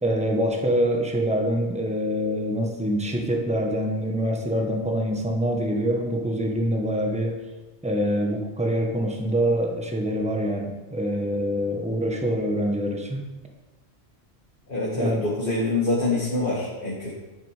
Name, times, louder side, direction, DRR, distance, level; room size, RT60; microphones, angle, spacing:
voice 1, 0.0-7.4 7.8-13.2 15.0-15.2, equal, 5° right, 1 dB, 1.3 m, -25 dB
voice 2, 14.7-17.2, left 2 dB, 55° left, -4 dB, 1.9 m, -25 dB
10.5 x 7.6 x 5.0 m, 1.1 s
omnidirectional pair, 1.1 m